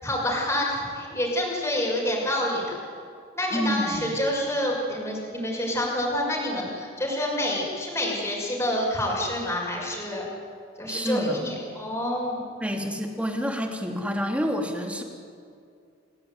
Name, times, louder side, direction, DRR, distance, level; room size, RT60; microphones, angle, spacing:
voice 1, 0.0-2.7 3.3-10.2 10.8-12.4, left 1 dB, 15° left, -3 dB, 6.4 m, -27 dB
voice 2, 3.5-4.1 10.9-11.4 12.6-15.0, equal, 5° right, 3 dB, 2.8 m, -28 dB
29.5 x 17.0 x 9.6 m, 2.4 s
head